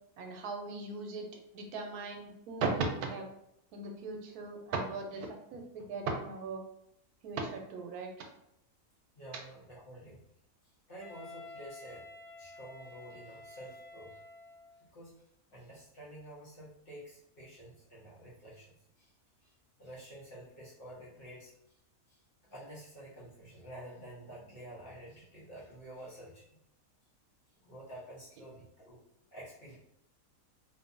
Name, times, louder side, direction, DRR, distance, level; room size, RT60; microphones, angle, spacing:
voice 1, 0.2-1.3 1.5-3.3 3.7-6.6 7.2-8.1, right 3 dB, 90° right, 3 dB, 1.1 m, -37 dB
voice 2, 9.1-10.2 10.6-12.1 12.4-14.2 14.8-15.1 15.5-19.1 19.4-19.5 19.8-21.8 22.1-26.5 27.6-29.0 29.3-29.8, right 1 dB, 50° left, -7 dB, 0.8 m, -50 dB
Wind instrument woodwind instrument, 11.0-14.8, left 2 dB, 55° right, 0.8 m, -50 dB
2.8 x 2.2 x 2.4 m, 0.78 s
omnidirectional pair, 1.6 m